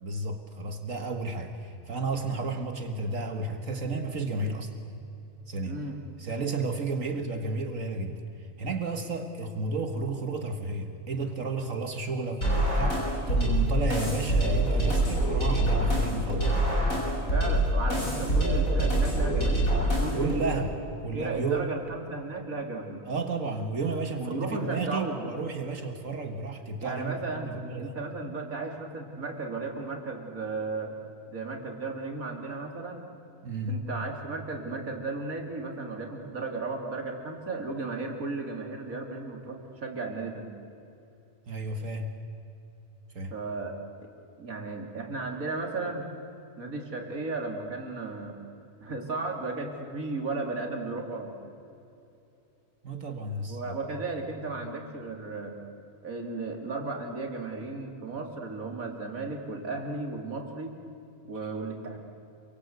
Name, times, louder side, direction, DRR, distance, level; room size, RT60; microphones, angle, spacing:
voice 1, 0.0-4.7 5.5-5.8 6.2-16.6 17.8-18.4 20.1-20.7 21.0-21.7 23.1-28.0 33.4-33.9 41.5-42.1 43.1-43.4 52.8-53.8, right 3 dB, 70° right, 6 dB, 1.9 m, -32 dB
voice 2, 5.6-6.0 16.3-16.4 17.3-19.7 20.0-20.6 21.1-23.0 24.2-25.3 26.8-31.0 31.3-33.1 33.7-40.5 43.3-43.8 44.4-46.1 46.6-48.4 48.8-51.4 53.5-55.6 56.0-60.8 61.3-62.0, right 3 dB, 90° right, 2 dB, 3.3 m, -35 dB
sound 1, 12.4-20.4, right 1 dB, 80° left, 7.4 m, -25 dB
28.0 x 24.0 x 8.1 m, 2.7 s
omnidirectional pair, 1.4 m